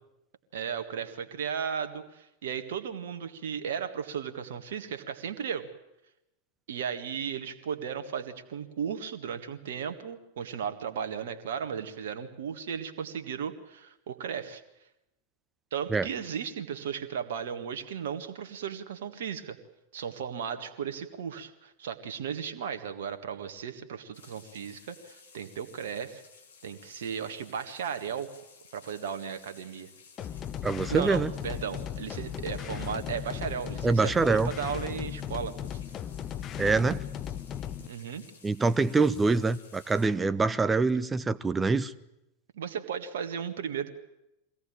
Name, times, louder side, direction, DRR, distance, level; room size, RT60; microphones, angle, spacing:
voice 1, 0.5-5.7 6.7-14.6 15.7-19.6 19.9-26.2 26.6-28.3 28.7-29.9 30.9-35.6 37.8-38.2 42.5-43.9, right 7 dB, 60° right, 8 dB, 1.8 m, -35 dB
sound 1, 24.1-40.1, left 5 dB, 65° left, 3.2 m, -56 dB
sound 2, 30.2-37.9, left 10 dB, 30° left, 0.8 m, -37 dB
voice 2, 30.6-31.3 33.8-34.5 36.6-37.0 38.4-41.9, right 3 dB, 15° right, 15 dB, 0.8 m, -25 dB
23.5 x 17.5 x 9.0 m, 0.88 s
figure-of-eight pair, 90°, 0 cm